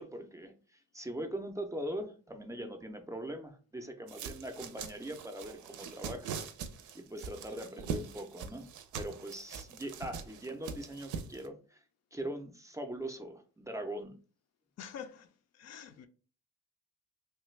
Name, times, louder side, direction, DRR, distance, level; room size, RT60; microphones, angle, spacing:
voice 1, 0.0-6.3 6.9-8.7 8.9-11.8 12.1-14.2, right 1 dB, 10° right, 0.4 m, -41 dB
sound 1, 4.1-11.5, right 6 dB, 75° right, 0.5 m, -42 dB
voice 2, 14.8-16.1, left 8 dB, 60° left, 0.5 m, -47 dB
3.2 x 2.2 x 3.1 m
cardioid pair, 90°, 30 cm